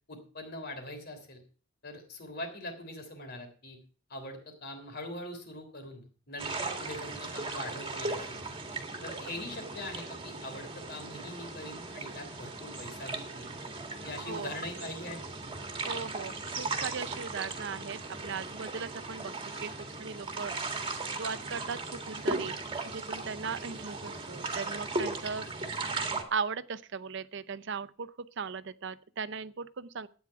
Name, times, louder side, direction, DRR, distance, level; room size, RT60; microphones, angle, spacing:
voice 1, 0.1-1.4 1.8-3.8 4.1-8.3 9.0-13.6 14.0-15.6, left 1 dB, 50° left, 6 dB, 3.3 m, -42 dB
sound 1, 6.4-26.2, right 3 dB, 25° right, 1.9 m, -37 dB
voice 2, 15.9-19.3 19.6-22.6 22.8-25.5 26.3-30.1, right 5 dB, 60° right, 14 dB, 0.6 m, -38 dB
12.0 x 9.6 x 4.6 m, 0.39 s
head